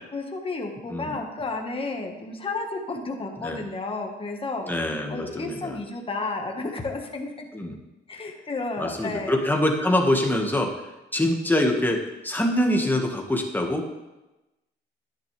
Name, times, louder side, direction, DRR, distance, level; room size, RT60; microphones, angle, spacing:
voice 1, 0.1-4.6 5.1-7.5 8.1-9.3, left 3 dB, 25° left, 1 dB, 1.5 m, -32 dB
voice 2, 4.6-5.8 7.5-7.7 8.8-12.0 12.2-13.8, left 1 dB, 10° left, 2 dB, 1.7 m, -24 dB
10.5 x 10.0 x 3.4 m, 1.0 s
cardioid pair, 90°, 20 cm